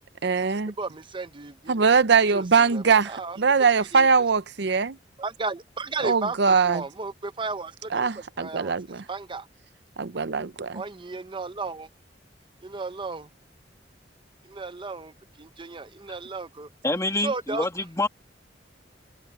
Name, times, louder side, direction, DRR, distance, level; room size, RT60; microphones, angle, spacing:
voice 1, 0.2-0.7 1.7-5.0 6.0-6.8 7.9-9.0 10.0-10.8, right 5 dB, 65° right, 0.7 m, -22 dB
voice 2, 0.8-2.0 2.3-4.1 5.2-9.5 10.7-11.9 12.6-13.3 14.4-15.1 15.4-16.7 17.2-17.7, right 3 dB, 30° right, 0.8 m, -34 dB
voice 3, 16.8-18.1, left 2 dB, 15° left, 2.4 m, -26 dB
head